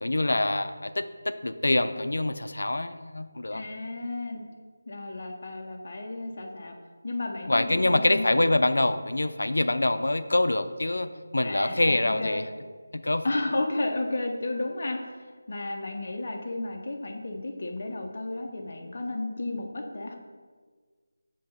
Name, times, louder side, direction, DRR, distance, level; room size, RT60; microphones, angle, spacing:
voice 1, 0.0-3.6 7.4-12.4 12.9-13.3, left 2 dB, 85° left, 11 dB, 0.4 m, -25 dB
voice 2, 3.5-4.4 4.9-6.7 7.0-8.2 11.4-12.4 13.2-20.2, left 2 dB, 45° left, 2 dB, 0.8 m, -32 dB
6.5 x 2.9 x 5.3 m, 1.5 s
figure-of-eight pair, 170°, 0 cm